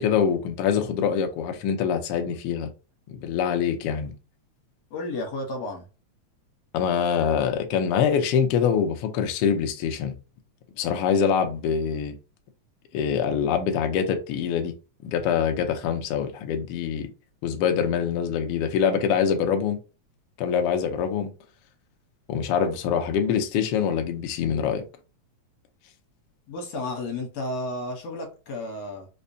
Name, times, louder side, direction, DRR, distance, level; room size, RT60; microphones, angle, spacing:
voice 1, 0.0-2.7 3.1-4.1 6.7-10.1 10.8-12.2 12.9-14.7 15.0-17.1 17.4-19.8 20.4-21.3 22.3-24.8, left 7 dB, 85° left, 1.3 m, -24 dB
voice 2, 4.9-5.8 26.5-29.1, left 2 dB, 65° left, 1.9 m, -32 dB
5.2 x 2.1 x 2.7 m
omnidirectional pair, 3.3 m